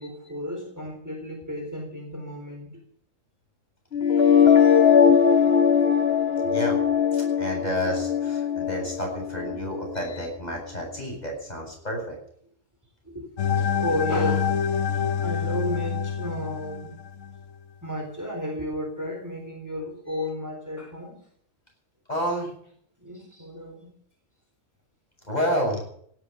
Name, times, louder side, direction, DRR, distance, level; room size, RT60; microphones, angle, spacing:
voice 1, 0.0-2.7 13.0-13.3 13.5-14.6 15.2-16.9 17.8-21.2 23.0-23.9, left 1 dB, 15° right, 2 dB, 4.2 m, -32 dB
sound 1, 3.9-9.9, left 7 dB, 50° left, 2.0 m, -20 dB
voice 2, 6.4-6.8 7.1-12.2 20.1-20.2 22.1-22.5 25.2-25.8, equal, 35° left, 0 dB, 8.3 m, -30 dB
sound 2, 13.4-17.4, left 7 dB, 75° left, 1.3 m, -26 dB
17.0 x 12.0 x 7.0 m, 0.64 s
omnidirectional pair, 1.3 m